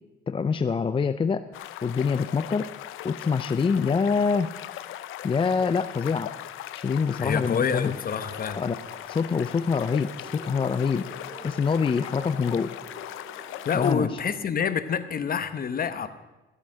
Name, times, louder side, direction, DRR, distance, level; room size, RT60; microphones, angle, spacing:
voice 1, 0.3-1.5 1.8-2.7 3.0-4.5 5.2-6.3 6.7-8.0 8.5-8.8 9.1-11.1 11.4-12.7 13.7-14.2, left 5 dB, 25° left, 11 dB, 0.4 m, -25 dB
sound 1, 1.5-13.9, left 13 dB, 90° left, 0.6 m, -39 dB
voice 2, 7.1-8.6 13.6-16.1, left 7 dB, 45° left, 12 dB, 1.0 m, -27 dB
sound 2, 8.2-14.4, right 2 dB, 65° right, 2.8 m, -47 dB
14.0 x 8.2 x 6.3 m, 1.1 s
cardioid pair, 90°, 20 cm